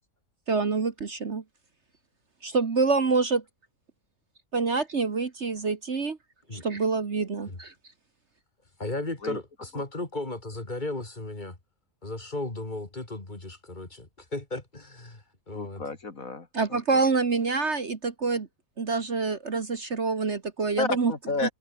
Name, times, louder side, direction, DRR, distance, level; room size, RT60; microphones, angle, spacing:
voice 1, 0.5-1.4 2.4-3.4 4.5-6.2 6.5-7.7 16.5-18.5 18.8-21.1 21.4-21.5, right 4 dB, 45° right, 1.8 m, -26 dB
voice 2, 8.8-11.5 12.0-15.8, left 2 dB, 30° left, 3.3 m, -35 dB
voice 3, 15.5-16.8 20.8-21.5, left 3 dB, 55° left, 3.0 m, -32 dB
omnidirectional pair, 1.7 m